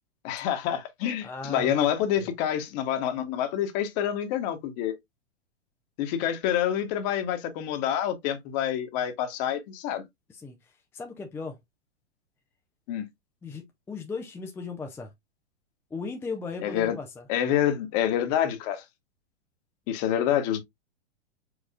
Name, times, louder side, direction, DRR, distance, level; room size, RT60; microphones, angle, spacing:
voice 1, 0.2-4.9 6.0-10.0 12.9-13.0 16.6-16.9 17.3-18.8 19.9-20.6, left 10 dB, 40° left, 1.3 m, -27 dB
voice 2, 1.2-1.9 2.2-2.3 10.3-11.6 13.4-15.1 15.9-17.3, left 4 dB, 5° left, 0.5 m, -37 dB
4.9 x 4.3 x 2.4 m
figure-of-eight pair, 105°, 33 cm